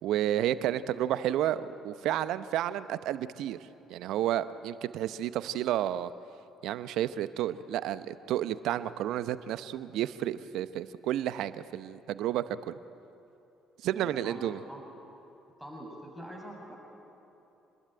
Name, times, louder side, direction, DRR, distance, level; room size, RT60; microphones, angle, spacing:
voice 1, 0.0-6.1 6.6-12.7 13.8-14.6, right 12 dB, 65° right, 14 dB, 0.8 m, -31 dB
voice 2, 13.9-14.9 15.6-16.8, equal, 5° left, -1 dB, 6.6 m, -44 dB
27.0 x 20.5 x 9.1 m, 2.9 s
hypercardioid pair, 50°, 0 cm